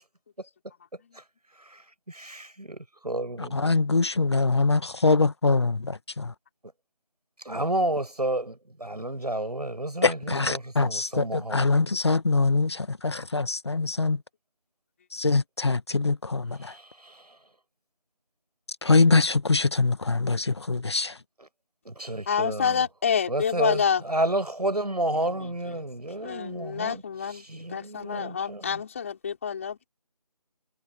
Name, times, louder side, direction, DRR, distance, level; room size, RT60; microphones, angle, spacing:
voice 1, 1.6-3.7 7.4-11.6 16.6-17.4 21.8-22.8 23.3-27.0 27.5-28.7, right 1 dB, 85° right, 6.7 m, -31 dB
voice 2, 3.4-6.3 10.0-14.2 15.1-16.7 18.8-21.2, left 3 dB, 45° left, 1.8 m, -23 dB
voice 3, 22.3-24.0 25.1-25.9 26.2-29.9, left 7 dB, 20° left, 5.5 m, -28 dB
figure-of-eight pair, 170°, 20 cm